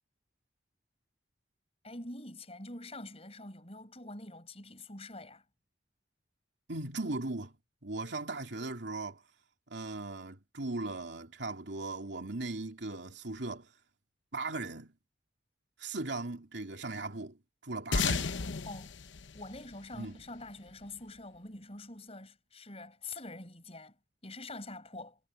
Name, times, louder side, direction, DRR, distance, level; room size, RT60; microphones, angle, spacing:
voice 1, 1.8-5.4 18.6-19.0 19.3-24.0 24.2-25.2, left 2 dB, 30° left, 7.5 m, -45 dB
voice 2, 6.7-7.6 7.8-9.2 9.7-13.7 14.3-14.9 15.8-18.4 19.9-20.2, right 2 dB, 70° right, 2.7 m, -38 dB
sound 1, 17.9-20.7, left 5 dB, 80° left, 0.8 m, -34 dB
head